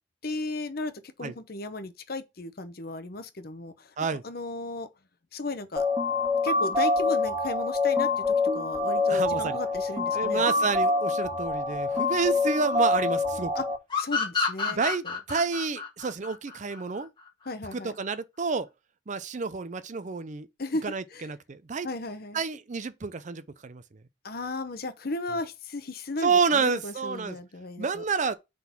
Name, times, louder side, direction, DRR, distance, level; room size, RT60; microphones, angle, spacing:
voice 1, 0.2-0.9 1.2-3.9 4.2-4.9 5.3-5.9 6.4-10.5 13.6-13.7 14.0-14.8 15.0-15.1 17.5-18.0 20.6-20.8 21.1-21.2 21.8-22.4 24.2-28.0, left 2 dB, 55° left, 0.9 m, -35 dB
sound 1, 5.8-13.8, left 3 dB, 20° right, 2.0 m, -26 dB
voice 2, 9.1-9.6 10.1-13.5 14.7-17.1 17.7-18.7 19.1-20.5 20.8-21.9 22.3-23.8 26.2-27.4 27.8-28.3, right 5 dB, 40° right, 0.5 m, -29 dB
sound 2, 13.9-17.3, left 4 dB, 25° left, 1.6 m, -29 dB
5.8 x 3.9 x 5.8 m
head